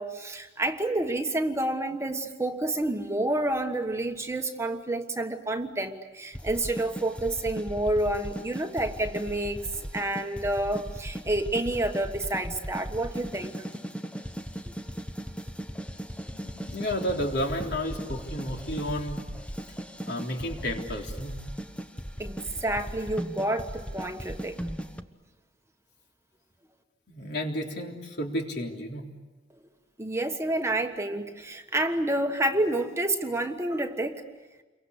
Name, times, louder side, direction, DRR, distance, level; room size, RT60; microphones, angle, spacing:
voice 1, 0.0-13.5 14.7-14.8 22.2-24.6 30.0-34.2, right 1 dB, 15° right, 5 dB, 1.3 m, -29 dB
sound 1, 6.3-25.0, equal, 5° left, 1.0 m, -38 dB
voice 2, 16.3-19.2 20.1-21.4 27.1-29.1, equal, 60° left, 1 dB, 3.6 m, -32 dB
29.0 x 23.5 x 8.2 m, 1.2 s
head